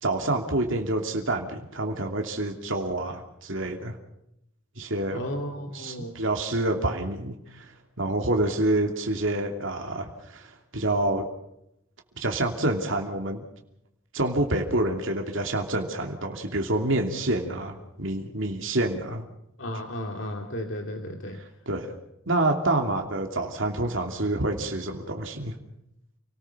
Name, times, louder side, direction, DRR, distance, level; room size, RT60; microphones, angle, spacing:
voice 1, 0.0-4.0 4.8-5.2 5.7-7.7 8.0-11.3 12.2-13.4 14.1-19.3 21.7-21.9 22.3-25.5, right 2 dB, 65° right, 3 dB, 2.8 m, -27 dB
voice 2, 5.1-6.1 19.6-21.4, equal, 60° left, 2 dB, 2.5 m, -34 dB
29.5 x 19.5 x 5.7 m, 0.80 s
head